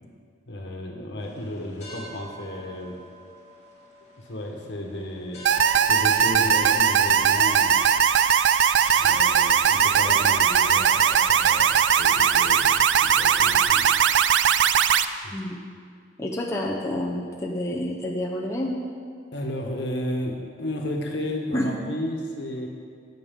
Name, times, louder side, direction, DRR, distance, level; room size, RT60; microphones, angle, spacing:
voice 1, 0.5-3.0 4.2-5.4 5.7-7.8 9.0-12.8 13.0-13.9 15.2-15.4 19.3-22.7, left 1 dB, 75° left, 1 dB, 1.4 m, -33 dB
sound 1, 1.2-12.1, equal, 40° left, 2.1 m, -47 dB
sound 2, 5.5-15.1, right 8 dB, 90° right, 0.4 m, -19 dB
voice 2, 16.2-18.8 21.5-21.7, left 1 dB, 15° left, -2 dB, 0.9 m, -28 dB
17.5 x 6.4 x 3.8 m, 2.1 s
head